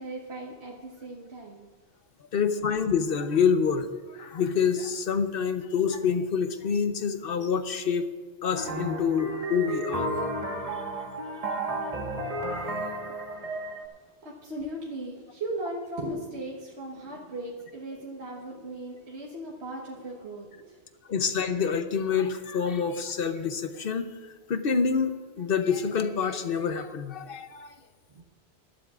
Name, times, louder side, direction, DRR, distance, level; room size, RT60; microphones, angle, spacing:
voice 1, 0.0-1.7 14.2-20.8 28.1-28.2, right 1 dB, 65° right, -2 dB, 1.6 m, -37 dB
voice 2, 2.3-8.0 8.4-10.1 10.7-10.8 21.1-24.1 24.5-27.7, left 6 dB, 55° left, 8 dB, 1.0 m, -27 dB
sound 1, 8.5-13.8, right 1 dB, 30° right, 1.5 m, -32 dB
21.5 x 12.5 x 2.5 m, 1.4 s
omnidirectional pair, 1.2 m